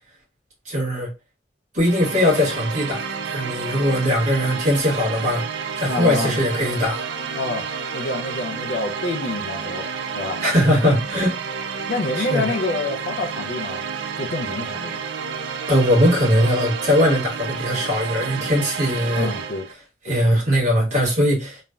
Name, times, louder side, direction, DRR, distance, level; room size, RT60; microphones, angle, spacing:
voice 1, 0.6-1.1 1.7-5.4 5.8-7.0 10.4-11.4 12.1-12.5 15.7-19.3 20.0-21.6, equal, 40° right, 1.4 m, -20 dB
sound 1, 1.8-19.7, right 6 dB, 70° right, 0.4 m, -30 dB
voice 2, 5.9-6.4 7.3-7.7 7.9-10.4 11.9-13.8 14.2-15.0 19.1-19.7 20.1-20.2, left 2 dB, 55° left, 0.4 m, -27 dB
3.1 x 2.1 x 2.3 m
head